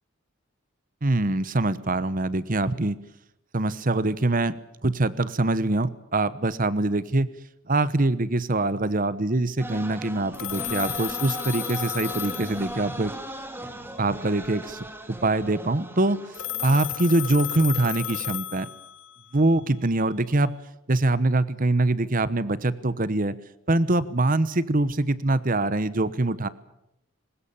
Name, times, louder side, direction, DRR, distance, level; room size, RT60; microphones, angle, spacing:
voice 1, 1.0-3.0 3.5-4.5 4.8-7.3 7.7-13.1 14.0-16.2 16.6-18.7 19.3-20.5 20.9-23.4 23.7-26.5, right 2 dB, 40° right, 16 dB, 1.0 m, -24 dB
sound 1, 9.6-17.8, right 1 dB, 10° right, 1.9 m, -38 dB
Telephone, 10.3-13.2 16.3-19.2, left 12 dB, 75° left, 1.2 m, -33 dB
22.5 x 20.0 x 8.7 m, 0.84 s
head